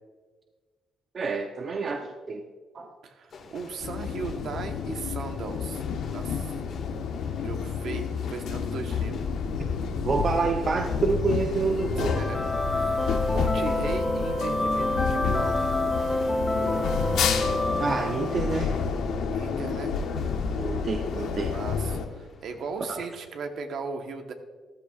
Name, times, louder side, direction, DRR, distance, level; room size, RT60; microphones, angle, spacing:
voice 1, 1.1-2.4 2.7-2.9 9.6-9.7 10.0-12.2 17.8-18.8 20.6-21.5 22.9-23.0, right 4 dB, 45° right, 4 dB, 0.7 m, -28 dB
voice 2, 3.0-5.8 6.1-6.5 7.4-9.2 12.0-12.4 12.7-15.6 19.3-19.9 21.5-24.3, right 5 dB, 70° right, 5 dB, 1.2 m, -37 dB
sound 1, 3.3-23.1, left 3 dB, 60° left, 1.8 m, -48 dB
sound 2, 3.8-22.0, left 6 dB, 80° left, 1.0 m, -30 dB
sound 3, 11.8-18.8, left 1 dB, 25° left, 2.0 m, -28 dB
14.0 x 12.0 x 2.5 m, 1.4 s
cardioid pair, 90°, 0 cm